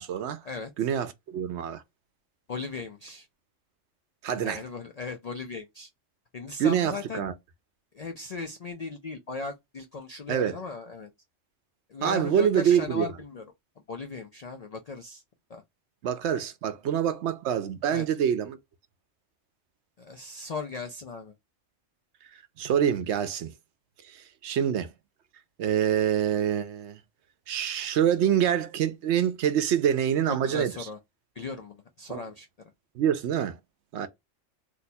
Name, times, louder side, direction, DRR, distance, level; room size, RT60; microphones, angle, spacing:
voice 1, 0.0-0.4 0.8-1.8 4.2-4.6 6.6-7.3 10.3-10.6 12.0-13.1 16.0-18.6 22.6-23.5 24.0-24.9 25.6-27.0 27.5-30.7 32.1-32.2 33.0-33.6 33.9-34.1, right 9 dB, 70° right, 0.8 m, -26 dB
voice 2, 2.5-3.3 4.3-5.9 6.3-7.3 7.9-11.1 11.9-13.5 13.9-15.2 15.5-15.6 17.9-18.1 20.0-21.3 30.3-31.0 31.4-32.5 34.0-34.1, left 4 dB, 75° left, 0.3 m, -37 dB
2.8 x 2.2 x 4.0 m
omnidirectional pair, 1.3 m